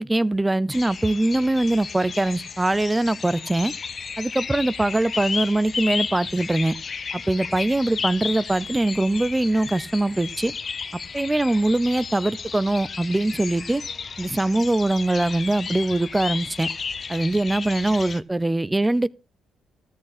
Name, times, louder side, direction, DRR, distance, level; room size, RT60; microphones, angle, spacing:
voice 1, 0.0-3.7 4.2-6.7 7.1-10.5 10.9-13.8 14.2-16.7 17.1-19.1, right 2 dB, 10° right, 0.5 m, -22 dB
sound 1, 0.7-18.2, left 5 dB, 45° left, 0.7 m, -33 dB
13.5 x 8.5 x 4.2 m
cardioid pair, 90°, 0 cm